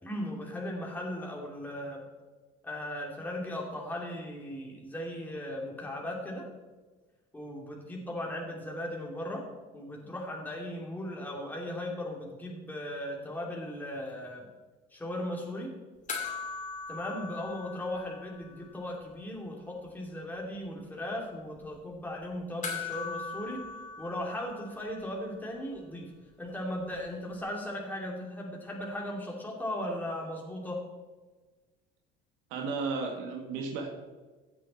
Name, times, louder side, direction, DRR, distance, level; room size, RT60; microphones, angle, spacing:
voice 1, 0.0-2.0 2.6-6.4 7.3-9.4 9.7-14.5 14.9-15.7 16.9-23.6 24.0-26.1 26.4-30.8, left 1 dB, 10° left, -1 dB, 2.5 m, -37 dB
sound 1, 16.1-18.8 19.0-19.1 22.6-25.2 27.4-27.5, left 4 dB, 40° left, 2.6 m, -40 dB
voice 2, 32.5-33.9, right 4 dB, 80° right, 2 dB, 2.0 m, -33 dB
15.5 x 7.6 x 4.2 m, 1.3 s
cardioid pair, 110°, 20 cm